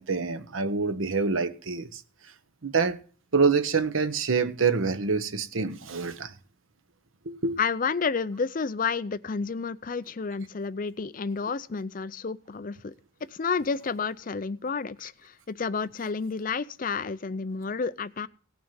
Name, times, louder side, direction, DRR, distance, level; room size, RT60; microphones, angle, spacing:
voice 1, 0.0-2.0 2.6-3.0 3.3-6.3 7.2-7.6, right 4 dB, 90° right, 0.9 m, -26 dB
voice 2, 7.6-12.9 13.3-18.3, left 5 dB, 45° left, 0.5 m, -30 dB
18.0 x 6.1 x 5.4 m
head